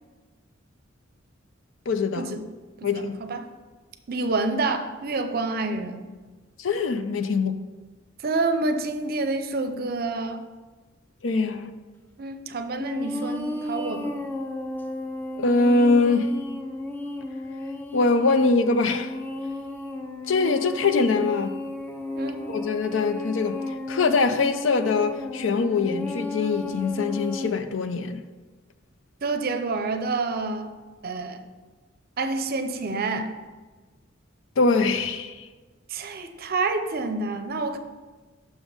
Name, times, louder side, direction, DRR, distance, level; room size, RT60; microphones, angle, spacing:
voice 1, 1.9-2.3 2.8-3.2 6.6-7.6 11.2-11.7 15.4-16.4 17.9-19.1 20.3-21.5 22.5-23.6 23.9-28.2 34.6-35.5, left 3 dB, 70° left, 0.5 m, -23 dB
voice 2, 2.8-3.5 4.1-6.1 8.2-10.4 12.2-14.2 22.1-22.5 29.2-30.7 31.0-31.4 32.2-33.3 35.9-37.8, right 3 dB, 50° right, 0.6 m, -28 dB
sound 1, 12.8-27.5, left 2 dB, 10° left, 0.5 m, -34 dB
6.2 x 5.3 x 4.9 m
head